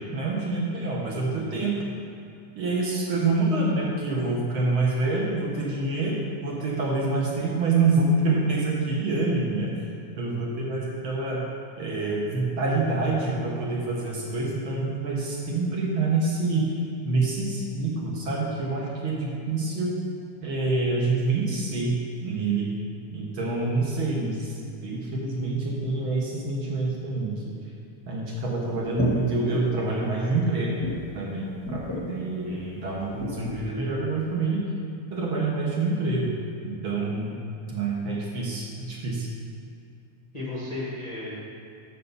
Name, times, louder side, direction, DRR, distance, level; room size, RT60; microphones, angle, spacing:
voice 1, 0.1-1.9 2.6-9.7 10.2-11.4 11.8-16.7 17.0-19.9 20.4-21.9 22.2-22.7 23.1-27.5 28.1-30.8 31.1-34.6 35.1-36.3 36.6-37.3 37.7-39.3, right 3 dB, 55° right, -3 dB, 1.6 m, -26 dB
voice 2, 13.9-14.4 32.4-32.8 40.3-41.3, left 2 dB, 60° left, -7 dB, 0.4 m, -36 dB
sound 1, 28.7-29.6 30.1-30.3 30.8-31.2 31.6-32.1 32.8-33.6, left 1 dB, 10° left, 0.8 m, -31 dB
6.7 x 6.7 x 6.8 m, 2.5 s
omnidirectional pair, 3.4 m